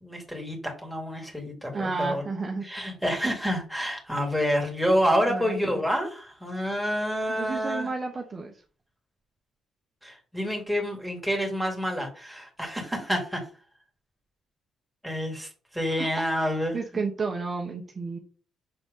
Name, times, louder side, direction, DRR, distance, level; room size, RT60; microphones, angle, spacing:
voice 1, 0.0-2.2 2.6-7.9 10.0-13.4 15.0-16.8, equal, ahead, 2 dB, 2.7 m, -28 dB
voice 2, 1.7-2.6 5.3-5.8 7.3-8.6 16.0-16.2 16.7-18.2, right 4 dB, 35° right, 2 dB, 1.1 m, -32 dB
6.8 x 3.9 x 3.8 m, 0.37 s
cardioid pair, 90°, 0 cm